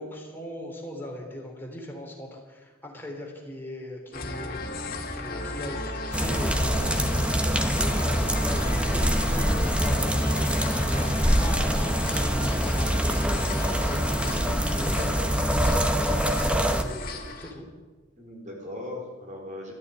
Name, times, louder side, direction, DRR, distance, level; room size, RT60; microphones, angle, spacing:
voice 1, 0.0-17.7, left 1 dB, 10° left, -1 dB, 3.5 m, -40 dB
sound 1, 4.1-17.5, left 2 dB, 45° left, 1.9 m, -34 dB
sound 2, 6.1-16.8, equal, 5° right, 0.9 m, -25 dB
voice 2, 7.7-8.3 18.2-19.7, left 1 dB, 40° right, 0 dB, 4.5 m, -39 dB
14.0 x 9.5 x 9.4 m, 1.3 s
head